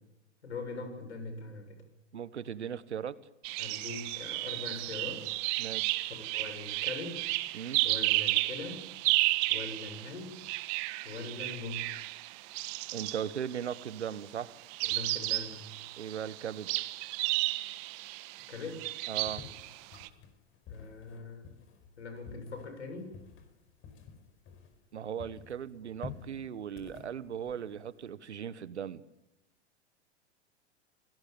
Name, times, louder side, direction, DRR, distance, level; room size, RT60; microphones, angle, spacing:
voice 1, 0.4-1.8 3.6-5.3 6.1-7.3 7.8-8.9 9.5-10.4 11.0-11.9 14.8-15.6 18.5-18.9 20.7-21.6 22.0-23.2, left 3 dB, 85° left, 7 dB, 7.0 m, -42 dB
voice 2, 2.1-3.2 5.6-6.0 7.5-7.8 12.9-14.5 16.0-16.7 19.1-19.4 24.9-29.0, right 8 dB, 85° right, 16 dB, 1.3 m, -38 dB
sound 1, 3.4-14.0 14.7-20.1, right 20 dB, 50° right, 1.5 m, -33 dB
sound 2, 19.3-24.9 25.2-28.1, left 6 dB, 40° left, 5.0 m, -50 dB
26.5 x 17.5 x 8.8 m, 0.99 s
hypercardioid pair, 100°, 33 cm